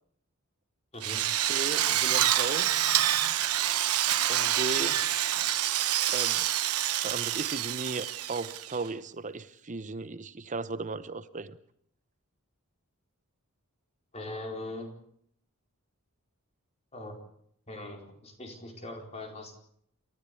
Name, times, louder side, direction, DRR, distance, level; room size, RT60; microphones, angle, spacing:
Drill, 1.0-8.9, right 12 dB, 85° right, 1.1 m, -27 dB
voice 1, 1.4-2.7 4.3-5.0 6.1-6.4 7.0-11.6, right 3 dB, 35° right, 0.8 m, -36 dB
voice 2, 14.1-14.9 16.9-17.2 17.7-19.5, left 2 dB, 30° left, 4.6 m, -40 dB
28.5 x 14.0 x 8.4 m
head